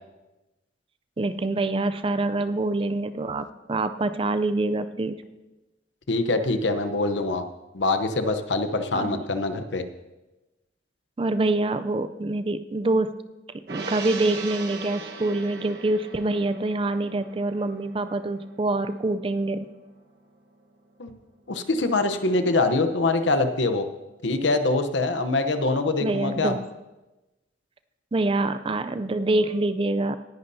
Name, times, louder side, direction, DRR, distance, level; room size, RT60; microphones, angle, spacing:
voice 1, 1.2-5.2 8.9-9.2 11.2-13.1 13.7-19.7 26.0-26.6 28.1-30.2, right 2 dB, 30° right, 11 dB, 0.4 m, -25 dB
voice 2, 6.1-7.4 7.7-9.8 21.0-21.1 21.5-23.9 24.2-26.5, left 2 dB, 75° left, 9 dB, 0.8 m, -24 dB
Gong, 13.7-20.3 20.6-20.8, right 4 dB, 60° right, 1.3 m, -40 dB
18.5 x 11.0 x 2.7 m, 1.1 s
head